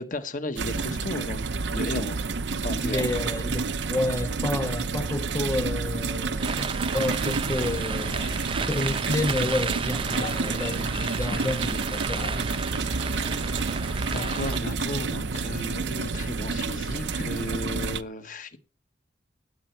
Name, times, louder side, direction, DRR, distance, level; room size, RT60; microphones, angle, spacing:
voice 1, 0.0-1.4 1.7-2.2 2.6-3.1 14.0-18.6, left 2 dB, 45° left, 1.2 m, -34 dB
sound 1, 0.6-18.0, right 4 dB, 70° right, 0.7 m, -29 dB
voice 2, 2.8-8.2 8.7-12.6, left 2 dB, 15° left, 0.7 m, -30 dB
sound 2, 6.4-14.6, right 5 dB, 30° right, 0.7 m, -33 dB
sound 3, 6.9-14.7, left 4 dB, 70° left, 2.8 m, -44 dB
16.0 x 10.0 x 4.5 m
head